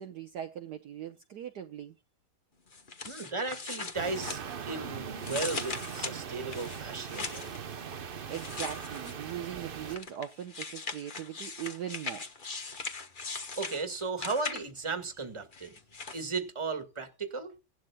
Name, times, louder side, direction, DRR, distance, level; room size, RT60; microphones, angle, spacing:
voice 1, 0.0-1.9 8.3-12.2, right 10 dB, 60° right, 1.3 m, -40 dB
sound 1, 2.7-4.8 5.2-7.6 8.3-9.3 9.9-14.9 15.5-16.3, left 4 dB, 30° left, 1.1 m, -40 dB
voice 2, 3.1-4.4 4.7-7.5 13.6-15.7 16.1-17.5, right 3 dB, 15° right, 1.7 m, -35 dB
sound 2, 3.9-10.0, right 7 dB, 85° right, 0.4 m, -40 dB
17.5 x 12.0 x 2.2 m
omnidirectional pair, 2.2 m